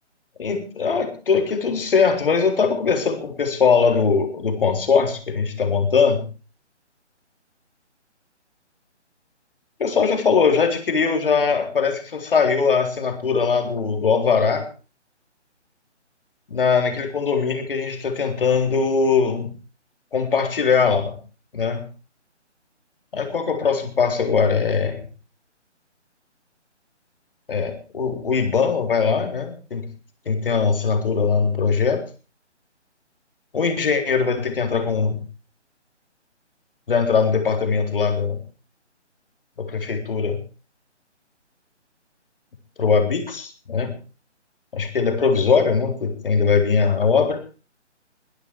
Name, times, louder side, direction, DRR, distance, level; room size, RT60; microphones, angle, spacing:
voice 1, 0.4-6.2 9.8-14.6 16.5-19.5 20.1-21.1 21.5-21.9 23.1-25.1 27.5-29.9 30.3-32.0 33.5-35.2 36.9-38.4 39.6-40.4 42.8-43.9 44.7-47.4, left 5 dB, 50° left, 5 dB, 3.9 m, -21 dB
21.5 x 12.0 x 4.7 m, 0.35 s
figure-of-eight pair, 145°, 36 cm